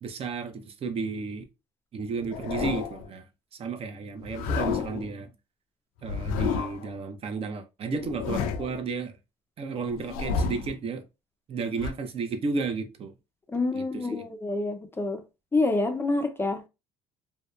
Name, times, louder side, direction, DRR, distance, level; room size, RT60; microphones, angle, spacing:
voice 1, 0.0-1.4 1.9-3.3 3.5-5.3 6.0-9.2 9.6-11.0 11.5-13.1 13.7-14.3, right 4 dB, 40° right, 0.5 m, -33 dB
sound 1, 2.2-3.1 4.2-5.1 6.0-6.9 7.9-8.8 9.9-10.8 11.8-11.9, left 6 dB, 75° left, 0.4 m, -31 dB
voice 2, 13.5-15.2 15.5-16.7, left 2 dB, 15° left, 0.4 m, -27 dB
2.7 x 2.0 x 2.2 m
supercardioid pair, 90°, 15 cm